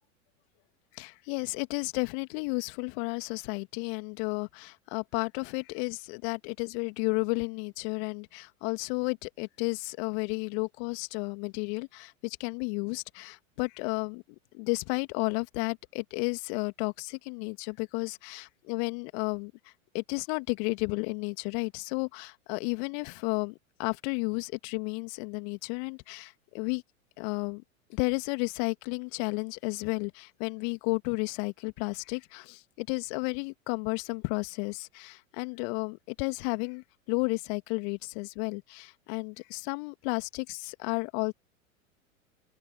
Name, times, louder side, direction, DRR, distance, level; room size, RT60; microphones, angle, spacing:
voice 1, 0.9-14.2 14.5-19.5 19.9-26.8 27.2-27.6 27.9-41.3, left 38 dB, 45° left, 2.2 m, -32 dB
open air
figure-of-eight pair, 95°, 42 cm